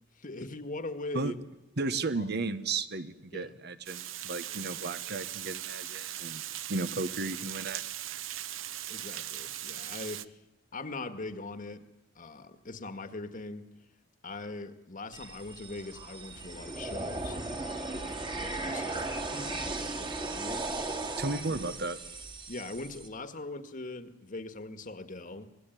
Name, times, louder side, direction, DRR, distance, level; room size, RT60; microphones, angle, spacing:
voice 1, 0.2-1.4 2.1-2.3 3.3-3.5 8.9-10.3 10.7-11.8 12.1-13.6 14.2-20.6 21.2-21.4 22.5-25.5, left 2 dB, 45° left, 10 dB, 1.7 m, -41 dB
voice 2, 1.8-6.4 6.7-7.8 21.2-22.0, right 3 dB, 55° right, 12 dB, 1.3 m, -34 dB
Water, 3.9-10.3, right 12 dB, 90° right, 0.9 m, -39 dB
sound 1, 15.1-23.1, right 2 dB, 25° right, 2.2 m, -37 dB
25.5 x 20.5 x 9.3 m, 0.92 s
head